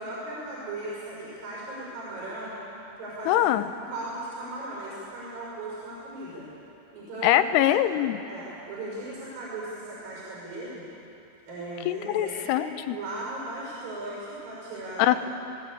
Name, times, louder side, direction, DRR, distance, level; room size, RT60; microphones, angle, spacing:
voice 1, 0.0-2.5 3.0-3.4 3.9-6.5 6.9-7.4 7.9-10.8 11.5-15.0, right 2 dB, 60° right, -6 dB, 6.8 m, -37 dB
voice 2, 3.3-3.7 7.2-8.2 11.9-13.0 15.0-15.2, left 13 dB, 90° left, 11 dB, 2.9 m, -23 dB
20.0 x 19.0 x 8.6 m, 2.9 s
omnidirectional pair, 4.7 m